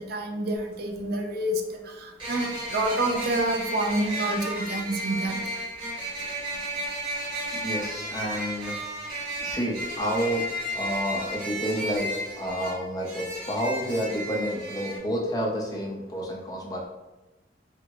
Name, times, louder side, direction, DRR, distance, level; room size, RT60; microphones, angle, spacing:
voice 1, 0.0-5.4, right 1 dB, 55° right, 3 dB, 0.4 m, -28 dB
sound 1, 0.6-0.7 2.2-15.0, right 1 dB, 25° right, 1.3 m, -33 dB
voice 2, 7.5-8.8 9.2-10.5 10.7-16.9, equal, 20° left, -2 dB, 0.5 m, -30 dB
3.5 x 2.1 x 2.9 m, 1.1 s
head